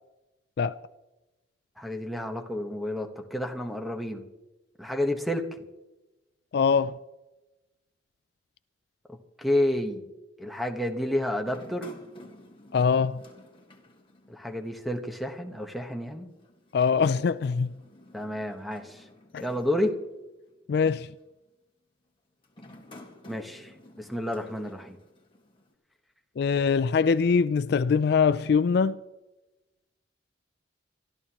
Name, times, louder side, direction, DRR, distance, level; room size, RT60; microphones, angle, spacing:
voice 1, 1.8-4.2 4.8-5.6 9.4-10.1 10.4-12.0 14.3-16.3 18.1-19.0 19.4-19.9 23.3-25.0, left 1 dB, ahead, 1.2 m, -30 dB
voice 2, 6.5-7.0 12.7-13.2 16.7-17.7 19.3-19.4 20.7-21.1 26.4-29.0, left 5 dB, 55° left, 0.3 m, -23 dB
sound 1, 11.4-14.8 15.1-15.2 16.3-20.5 21.2-21.5 22.4-25.7, left 1 dB, 25° left, 1.7 m, -52 dB
24.0 x 13.0 x 3.0 m
head